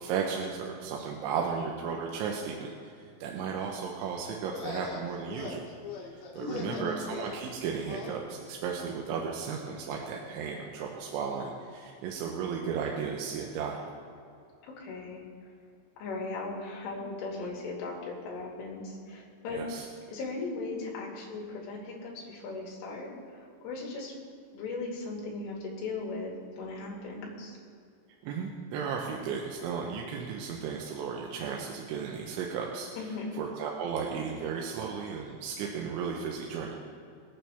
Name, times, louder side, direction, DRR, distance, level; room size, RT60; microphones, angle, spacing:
voice 1, 0.0-5.7 6.1-13.9 19.5-19.9 28.2-32.9 33.4-36.8, right 6 dB, 80° right, -1 dB, 3.3 m, -35 dB
sound 1, 4.3-8.2, left 5 dB, 65° left, 3.7 m, -42 dB
voice 2, 6.4-7.0 14.8-15.2 16.0-19.6 20.1-24.1 24.5-27.6 33.0-33.4, left 3 dB, 85° left, -3 dB, 5.1 m, -38 dB
24.5 x 9.2 x 3.5 m, 2.4 s
omnidirectional pair, 5.6 m